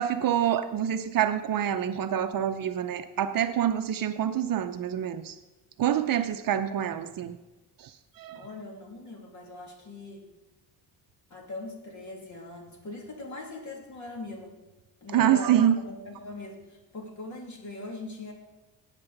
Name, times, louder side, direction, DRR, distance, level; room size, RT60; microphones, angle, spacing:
voice 1, 0.0-5.4 5.8-7.4 7.8-7.9 8.2-8.4 15.1-15.8, right 10 dB, 50° right, 9 dB, 0.7 m, -26 dB
voice 2, 6.5-7.0 8.3-10.2 11.3-14.5 15.0-18.3, left 2 dB, 40° left, 1 dB, 2.6 m, -41 dB
16.5 x 9.0 x 4.0 m, 1.1 s
cardioid pair, 155°, 43 cm